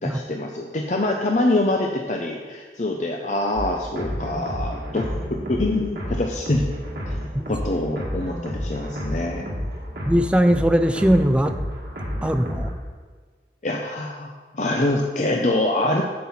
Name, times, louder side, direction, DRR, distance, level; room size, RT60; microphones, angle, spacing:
voice 1, 0.0-5.1 5.5-6.6 7.1-7.2 7.5-9.4 13.6-16.0, left 2 dB, 40° left, 1 dB, 0.6 m, -24 dB
sound 1, 3.5-12.7, equal, 60° right, 2.3 m, -30 dB
voice 2, 10.0-11.6 12.2-12.7, equal, 5° right, 7 dB, 0.4 m, -19 dB
9.4 x 7.6 x 4.3 m, 1.5 s
head